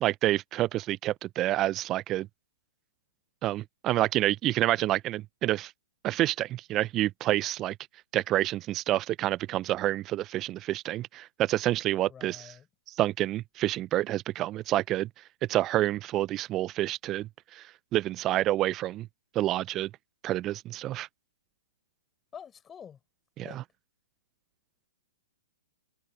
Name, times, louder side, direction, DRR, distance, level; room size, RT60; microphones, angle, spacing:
voice 1, 0.0-2.3 3.4-5.7 6.0-7.8 8.1-12.5 13.0-15.1 15.5-17.7 17.9-19.1 19.3-19.9 20.2-21.1 23.4-23.6, right 14 dB, 25° right, 0.6 m, -28 dB
voice 2, 12.1-12.7 22.3-23.0 23.4-23.6, left 8 dB, 15° left, 7.0 m, -47 dB
figure-of-eight pair, 115°, 0 cm